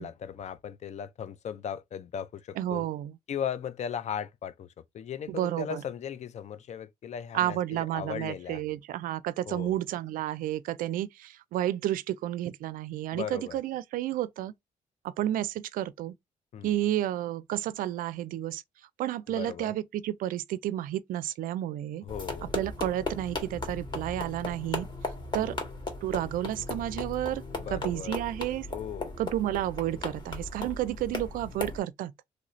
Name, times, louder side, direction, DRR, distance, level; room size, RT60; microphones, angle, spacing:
voice 1, 0.0-2.9 3.3-4.7 4.9-8.8 9.5-9.8 13.1-13.6 16.5-16.7 19.3-19.8 22.0-22.5 25.3-25.6 27.5-28.2 28.7-29.1, left 8 dB, 55° left, 0.5 m, -37 dB
voice 2, 2.6-3.2 5.3-5.8 7.3-14.5 15.0-16.1 16.6-18.6 19.0-22.0 22.5-24.9 25.3-25.6 26.0-27.4 27.7-28.7 29.2-32.1, right 13 dB, 75° right, 0.4 m, -31 dB
sound 1, 22.1-31.8, left 2 dB, 30° left, 1.6 m, -37 dB
3.1 x 2.4 x 3.1 m
supercardioid pair, 70°, 15 cm